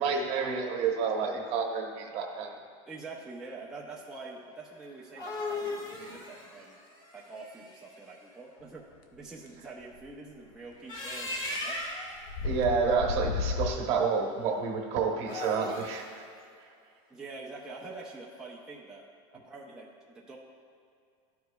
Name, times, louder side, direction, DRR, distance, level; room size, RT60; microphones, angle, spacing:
voice 1, 0.0-2.6 12.4-16.2, right 5 dB, 40° right, 2 dB, 1.0 m, -29 dB
voice 2, 2.9-6.8 7.1-8.9 9.1-11.8 17.1-19.0 19.4-20.4, right 3 dB, 5° right, -4 dB, 0.6 m, -45 dB
sound 1, 4.9-8.0 10.7-12.2 15.1-16.0, left 2 dB, 25° left, 1.5 m, -37 dB
sound 2, 10.0-10.1 11.5-11.7 12.2-13.8, left 4 dB, 60° left, 0.7 m, -32 dB
13.0 x 4.9 x 2.3 m, 2.4 s
supercardioid pair, 155°, 16 cm